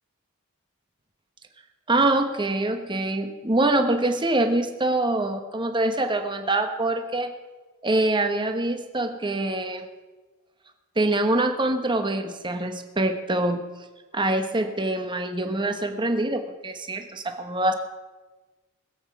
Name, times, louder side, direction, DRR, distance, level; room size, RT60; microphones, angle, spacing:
voice 1, 1.9-7.3 7.8-9.9 11.0-13.6 14.1-17.7, right 2 dB, 20° right, 6 dB, 1.1 m, -24 dB
21.5 x 8.2 x 4.7 m, 1.2 s
head